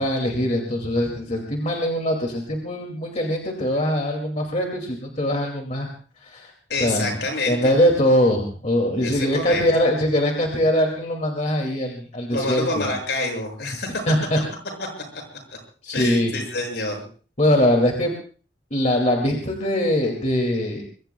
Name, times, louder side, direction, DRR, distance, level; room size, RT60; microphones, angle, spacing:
voice 1, 0.0-5.9 6.2-6.5 6.8-12.9 14.1-14.4 15.8-16.3 17.4-18.1 18.7-20.8, left 1 dB, 40° left, 1 dB, 2.5 m, -22 dB
voice 2, 6.7-7.7 9.0-9.6 12.3-14.0 15.9-17.0, left 2 dB, 75° left, 2 dB, 7.2 m, -27 dB
25.0 x 22.5 x 2.3 m, 0.40 s
head